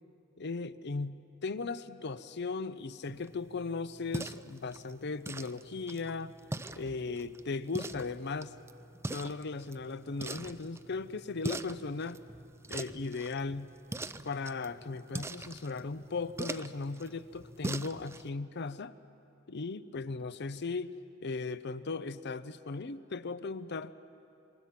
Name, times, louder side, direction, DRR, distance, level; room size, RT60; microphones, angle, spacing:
voice 1, 0.4-6.3 6.7-8.5 9.1-12.2 12.7-13.7 14.2-18.9 19.5-20.9 21.2-23.9, left 4 dB, 55° left, 14 dB, 0.7 m, -37 dB
sound 1, 3.1-18.3, right 2 dB, 15° right, 0.5 m, -43 dB
27.5 x 25.0 x 5.9 m, 2.7 s
head